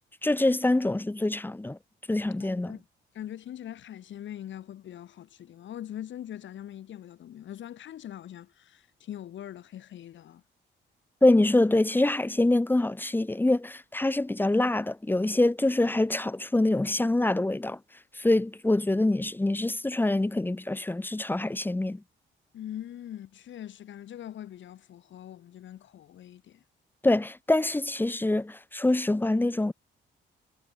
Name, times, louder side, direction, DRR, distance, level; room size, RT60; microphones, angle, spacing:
voice 1, 0.2-1.8 2.1-2.7 11.2-17.8 18.2-22.0 27.0-29.7, left 2 dB, 10° left, 0.8 m, -25 dB
voice 2, 2.4-2.8 3.1-10.4 22.5-26.6, left 11 dB, 70° left, 5.1 m, -42 dB
cardioid pair, 90°, 20 cm